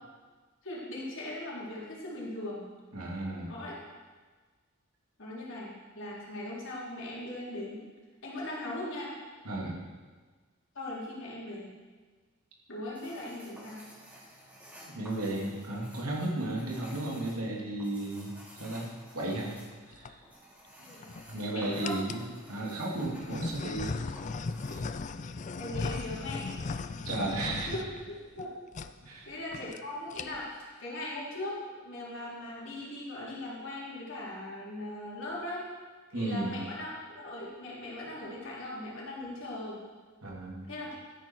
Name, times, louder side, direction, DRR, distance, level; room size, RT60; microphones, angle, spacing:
voice 1, 0.6-2.7 3.5-3.8 5.2-7.8 8.2-9.1 10.7-11.7 12.7-13.9 20.8-21.0 21.5-22.0 24.7-24.8 25.5-26.4 27.7-28.5 29.3-31.6 31.8-35.6 36.1-39.8 40.7-41.0, left 1 dB, 60° left, -6 dB, 3.9 m, -39 dB
voice 2, 2.9-3.5 9.4-9.8 14.8-18.3 18.6-18.9 19.1-19.5 19.9-20.2 21.3-24.0 24.7-24.8 27.0-27.7 29.0-29.3 36.1-36.6 40.2-40.7, right 2 dB, 90° right, -2 dB, 2.8 m, -34 dB
sound 1, 12.9-24.8, equal, 5° right, 3.1 m, -53 dB
sound 2, 19.7-20.1 20.8-21.4 21.8-22.3 23.0-28.5 28.7-28.9 29.2-29.3 29.5-29.8 30.1-30.6, left 4 dB, 35° left, 0.4 m, -37 dB
13.0 x 10.5 x 4.6 m, 1.4 s
head